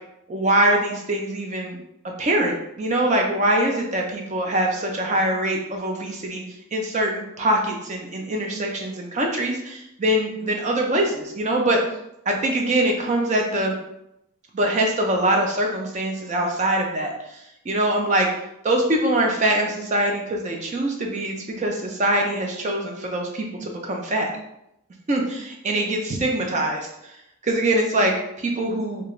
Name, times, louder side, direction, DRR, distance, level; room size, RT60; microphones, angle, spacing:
voice 1, 0.3-1.8 2.0-6.4 6.7-11.8 12.3-13.7 14.5-17.1 17.7-18.3 18.6-24.3 25.1-26.9 27.4-29.1, right 1 dB, 30° right, 1 dB, 0.4 m, -23 dB
2.4 x 2.2 x 2.9 m, 0.81 s
head